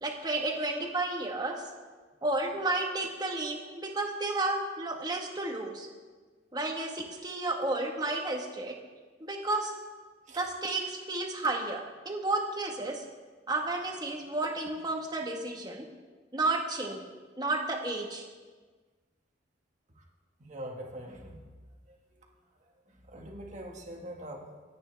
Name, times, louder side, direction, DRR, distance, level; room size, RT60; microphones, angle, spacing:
voice 1, 0.0-1.6 2.2-5.9 6.5-8.8 9.2-9.7 10.4-13.0 13.5-15.9 16.3-17.1 17.4-18.3, right 2 dB, 25° right, 2 dB, 1.6 m, -32 dB
voice 2, 20.4-21.4 23.1-24.5, right 1 dB, 40° right, 0 dB, 1.9 m, -42 dB
25.5 x 9.3 x 3.5 m, 1.4 s
head